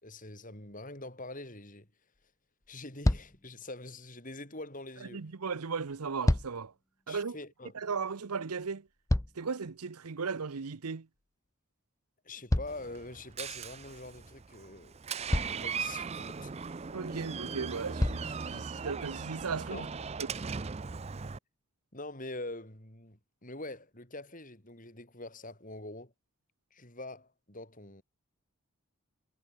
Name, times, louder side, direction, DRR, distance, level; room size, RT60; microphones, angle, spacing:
voice 1, 0.0-1.9 2.7-5.3 7.1-7.9 12.2-15.0 15.4-16.5 19.7-19.9 21.9-26.1 26.7-28.0, left 2 dB, 35° left, 6.4 m, -44 dB
sound 1, 0.7-0.8 2.1-2.2 2.6-2.8 3.0-3.5 5.9-6.7 8.6-9.7 12.5-13.5 14.7-14.8 15.3-15.7 17.2-17.3 18.0-18.4 19.2-19.3, left 1 dB, 15° left, 0.6 m, -30 dB
voice 2, 5.1-6.7 7.1-7.4 7.7-8.8 9.4-11.1 16.9-19.9, right 5 dB, 85° right, 0.8 m, -36 dB
Door, 12.7-21.4, right 5 dB, 30° right, 0.5 m, -39 dB
head